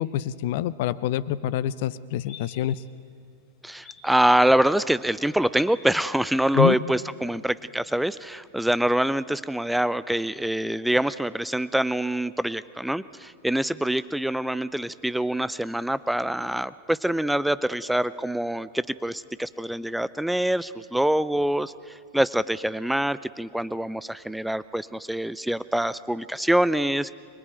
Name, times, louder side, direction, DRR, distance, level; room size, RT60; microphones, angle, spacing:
voice 1, 0.0-2.8 6.5-6.7, left 12 dB, 50° left, 17 dB, 0.8 m, -26 dB
sound 1, 2.2-8.5, left 6 dB, 35° left, 6.3 m, -52 dB
voice 2, 3.6-27.1, right 1 dB, ahead, 16 dB, 0.6 m, -25 dB
25.0 x 21.0 x 9.2 m, 2.3 s
figure-of-eight pair, 90°, 0 cm